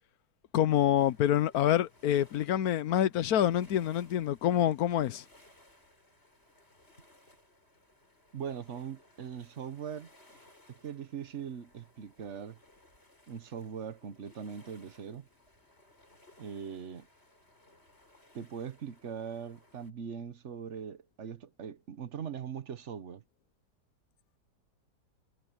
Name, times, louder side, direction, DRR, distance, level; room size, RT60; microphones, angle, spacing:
voice 1, 0.5-5.2, left 11 dB, 65° left, 1.2 m, -26 dB
sound 1, 1.0-19.9, left 1 dB, 35° left, 7.6 m, -62 dB
voice 2, 8.3-10.1 10.7-12.6 13.3-15.3 16.4-17.1 18.3-23.2, right 7 dB, 45° right, 1.2 m, -41 dB
omnidirectional pair, 1.9 m